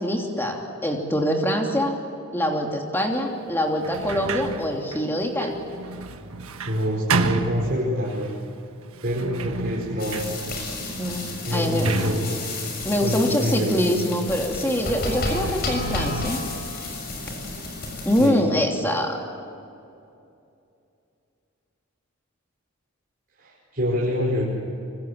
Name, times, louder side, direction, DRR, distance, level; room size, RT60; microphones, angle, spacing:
voice 1, 0.0-2.0 2.3-5.5 11.0-11.9 12.8-16.4 18.0-19.2, equal, 10° left, 1 dB, 3.0 m, -24 dB
Sliding door, 3.8-8.3 8.9-13.8, right 3 dB, 70° right, 1.4 m, -31 dB
voice 2, 6.6-8.3 9.0-10.4 11.4-12.5 13.0-13.8 17.8-18.5 23.4-24.4, equal, 45° right, -4 dB, 5.4 m, -26 dB
sound 1, 10.0-18.3, left 2 dB, 45° left, 6.5 m, -31 dB
25.0 x 25.0 x 8.9 m, 2.6 s
head